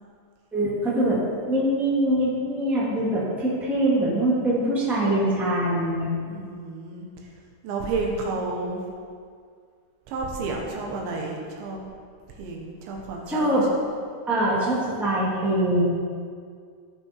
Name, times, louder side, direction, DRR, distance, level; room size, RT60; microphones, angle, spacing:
voice 1, 0.5-6.1 13.3-13.6 14.3-15.8, right 1 dB, ahead, -8 dB, 1.9 m, -23 dB
voice 2, 6.2-7.1 7.6-8.8 10.1-11.8 12.4-13.6, right 3 dB, 85° right, 0 dB, 3.6 m, -31 dB
16.5 x 5.9 x 4.7 m, 2.1 s
omnidirectional pair, 5.1 m